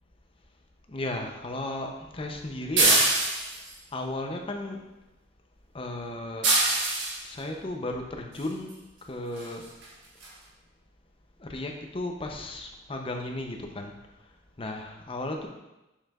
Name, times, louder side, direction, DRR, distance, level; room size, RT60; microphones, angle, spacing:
voice 1, 0.9-3.1 3.9-4.8 5.7-6.5 7.2-8.7 9.0-9.7 11.4-13.9 14.6-15.5, left 2 dB, 30° left, 3 dB, 0.6 m, -34 dB
sound 1, 2.8-3.7 6.4-7.2 8.7-8.8 9.4-9.5 9.8-9.9 10.2-10.3, right 2 dB, 65° right, 1.4 m, -23 dB
6.5 x 6.2 x 2.4 m, 1.0 s
head